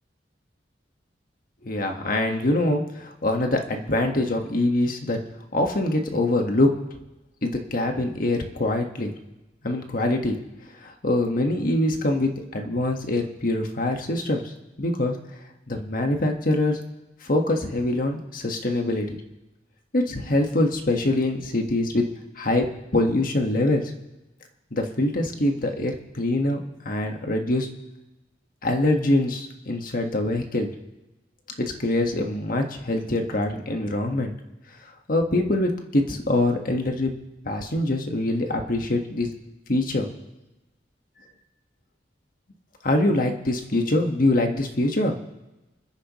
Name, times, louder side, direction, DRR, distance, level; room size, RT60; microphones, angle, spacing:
voice 1, 1.6-5.2 5.5-6.8 7.4-9.1 9.6-10.4 10.8-14.5 14.8-15.2 15.7-16.8 17.2-19.2 19.9-22.1 22.4-23.9 24.7-26.6 26.8-27.7 28.6-30.7 31.6-34.3 35.1-37.1 37.4-39.3 39.7-40.1 42.8-45.1, left 1 dB, 55° left, 3 dB, 1.6 m, -24 dB
28.5 x 10.5 x 3.1 m, 1.0 s
head